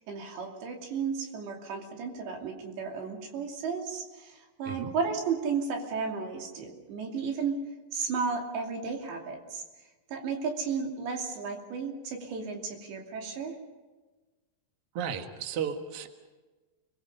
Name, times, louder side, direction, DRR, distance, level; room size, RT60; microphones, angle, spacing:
voice 1, 0.1-7.6 7.9-9.6 10.1-13.6, right 5 dB, 90° right, 1 dB, 5.0 m, -33 dB
voice 2, 14.9-16.1, right 7 dB, 55° right, 5 dB, 1.8 m, -34 dB
30.0 x 21.0 x 5.5 m, 1.3 s
omnidirectional pair, 4.9 m